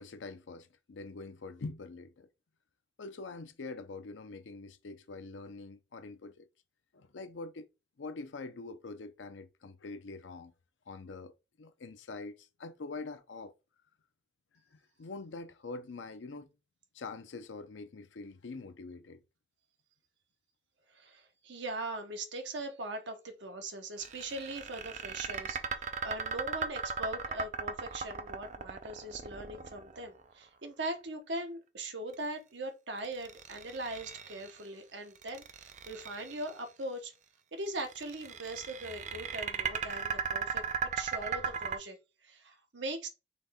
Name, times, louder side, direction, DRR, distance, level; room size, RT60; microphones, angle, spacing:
voice 1, 0.0-2.3 3.0-6.5 6.9-7.7 8.0-10.5 10.9-11.3 11.6-13.5 14.7-16.5 16.9-19.2, left 3 dB, 75° left, 0.5 m, -44 dB
voice 2, 20.9-37.1 37.5-42.0 42.2-43.1, right 2 dB, 70° right, 1.0 m, -40 dB
sound 1, 24.0-30.2 33.0-34.6 35.1-36.5 37.7-41.8, right 6 dB, 40° right, 0.5 m, -37 dB
4.1 x 3.2 x 3.5 m
head